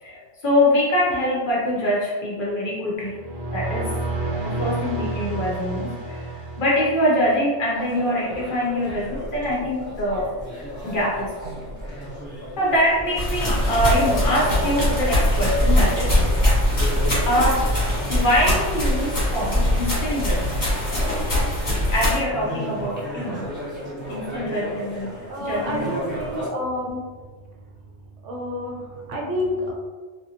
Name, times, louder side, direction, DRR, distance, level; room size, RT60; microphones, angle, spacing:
voice 1, 0.0-3.2 3.5-4.0 4.4-10.3 10.8-12.0 12.6-16.1 17.3-17.7 18.1-20.8 21.9-23.5 24.1-26.1, left 1 dB, 55° left, -4 dB, 0.6 m, -24 dB
sound 1, 3.0-7.4, right 2 dB, 40° right, 0.9 m, -30 dB
sound 2, 7.7-26.5, equal, 10° right, 0.9 m, -35 dB
sound 3, 13.2-22.2, left 1 dB, 35° left, 1.1 m, -22 dB
voice 2, 25.3-27.0 28.2-29.7, left 1 dB, 70° right, -1 dB, 0.9 m, -29 dB
2.6 x 2.4 x 2.7 m, 1.4 s
omnidirectional pair, 1.4 m